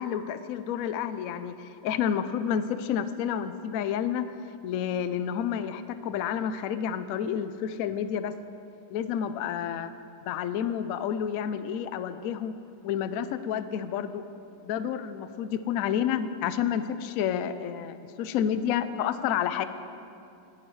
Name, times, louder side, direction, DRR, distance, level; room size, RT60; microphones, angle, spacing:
voice 1, 0.0-4.3 4.6-8.3 8.9-9.9 10.3-12.5 12.8-14.2 14.6-19.6, left 9 dB, 80° left, 11 dB, 0.7 m, -30 dB
19.5 x 11.0 x 3.2 m, 2.6 s
omnidirectional pair, 2.0 m